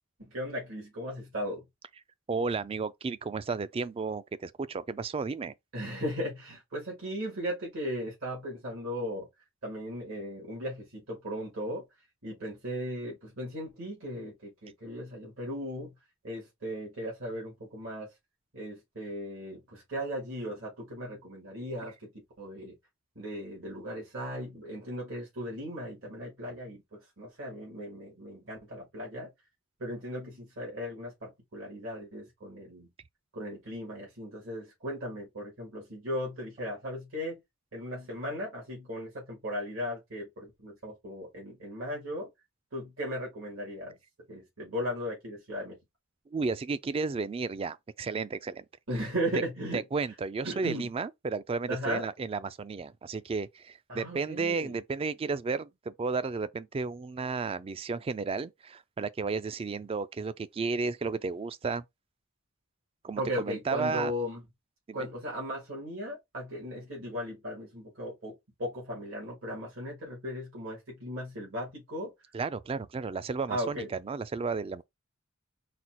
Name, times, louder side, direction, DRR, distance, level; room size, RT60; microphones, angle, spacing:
voice 1, 0.2-1.6 5.7-9.3 9.6-11.8 12.2-15.9 16.2-18.1 18.5-22.1 22.4-22.7 23.2-29.3 29.8-32.9 33.3-37.4 37.7-42.3 42.7-43.9 44.3-45.8 48.9-49.8 50.4-50.9 51.7-52.0 53.9-54.7 63.2-64.4 64.9-72.1 73.5-73.9, equal, 75° right, 1.8 m, -37 dB
voice 2, 2.3-5.5 46.3-48.7 49.7-61.8 63.0-64.1 64.9-65.0 72.3-74.8, right 4 dB, 30° right, 0.3 m, -33 dB
4.2 x 2.3 x 4.3 m
head